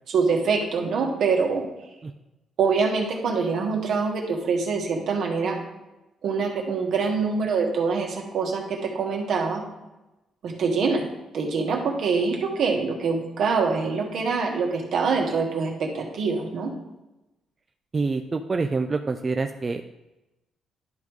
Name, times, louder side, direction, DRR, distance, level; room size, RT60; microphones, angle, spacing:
voice 1, 0.1-1.6 2.6-5.6 6.2-9.6 10.4-11.0 11.3-16.7, right 5 dB, 70° right, 1 dB, 1.5 m, -24 dB
voice 2, 17.9-19.8, right 3 dB, 30° right, 5 dB, 0.4 m, -26 dB
11.0 x 3.7 x 4.7 m, 0.99 s
cardioid pair, 90°, 0 cm